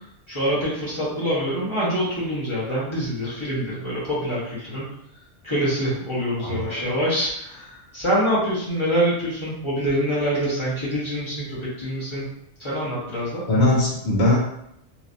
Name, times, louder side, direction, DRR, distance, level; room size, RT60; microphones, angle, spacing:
voice 1, 0.3-4.8 5.4-7.7 7.9-12.2 12.6-13.4, equal, 25° left, -9 dB, 1.2 m, -25 dB
voice 2, 6.4-6.9 13.5-14.4, left 2 dB, 60° left, -5 dB, 1.3 m, -21 dB
3.0 x 2.9 x 2.6 m, 0.75 s
omnidirectional pair, 1.2 m